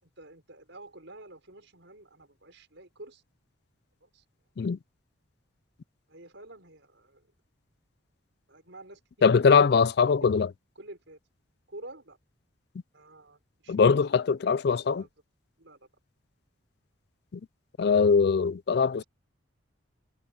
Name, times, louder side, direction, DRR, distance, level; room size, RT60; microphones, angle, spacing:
voice 1, 0.0-3.2 4.0-4.2 6.1-7.3 8.5-9.4 9.7-9.9 10.2-10.3 10.8-11.2 11.7-12.2 12.9-13.8 14.9-15.1 15.6-15.9 19.0-19.1, right 2 dB, 65° right, 5.5 m, -49 dB
voice 2, 9.2-10.5 13.7-15.1 17.3-17.4 17.8-19.0, left 5 dB, 55° left, 0.4 m, -22 dB
head